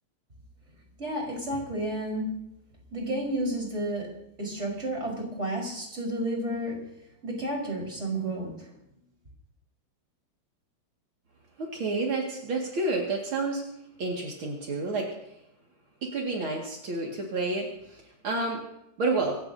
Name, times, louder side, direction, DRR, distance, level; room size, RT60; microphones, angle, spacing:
voice 1, 1.0-2.3 2.9-4.1 4.4-6.8 7.2-8.5, right 1 dB, 15° right, -1 dB, 4.4 m, -31 dB
voice 2, 11.6-13.6 14.0-15.1 16.0-18.6 19.0-19.4, right 3 dB, 55° right, -1 dB, 1.4 m, -30 dB
26.0 x 16.0 x 2.8 m, 0.81 s
omnidirectional pair, 5.8 m